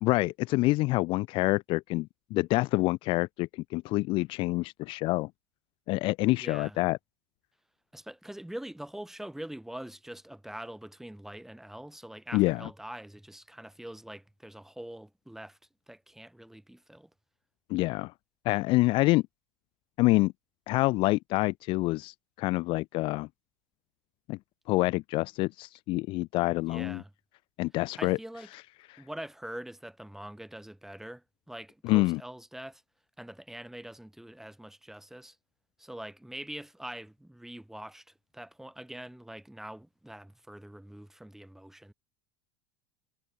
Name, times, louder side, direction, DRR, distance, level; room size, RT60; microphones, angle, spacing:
voice 1, 0.0-5.3 5.9-7.0 12.3-12.7 17.7-18.1 18.5-19.2 20.0-20.3 20.7-23.3 24.3-24.4 24.7-27.0 27.6-28.2 28.9-29.0 31.8-32.2, left 21 dB, 50° left, 0.4 m, -27 dB
voice 2, 6.4-6.8 7.9-15.6 15.9-17.1 26.7-27.1 28.0-28.5 29.0-32.8 33.2-35.4 35.8-41.9, right 1 dB, 5° right, 2.6 m, -44 dB
hypercardioid pair, 85°, 11 cm